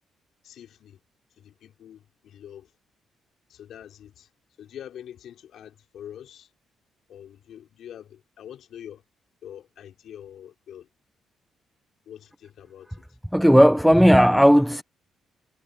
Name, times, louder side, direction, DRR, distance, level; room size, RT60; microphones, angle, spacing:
voice 1, 0.4-1.0 1.4-2.7 3.5-4.3 4.6-6.5 7.1-9.0 9.4-10.9 12.0-13.1, left 10 dB, 70° left, 4.9 m, -44 dB
voice 2, 13.3-14.8, equal, ahead, 0.6 m, -15 dB
cardioid pair, 90°, 0 cm